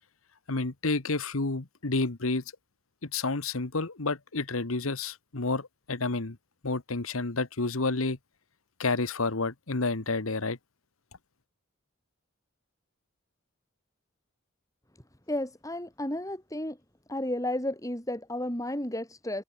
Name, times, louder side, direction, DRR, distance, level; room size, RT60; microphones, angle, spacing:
voice 1, 0.5-2.4 3.0-6.4 6.6-8.2 8.8-10.6, left 3 dB, 85° left, 1.5 m, -30 dB
voice 2, 15.3-16.8 17.1-19.4, left 1 dB, 15° left, 6.3 m, -32 dB
head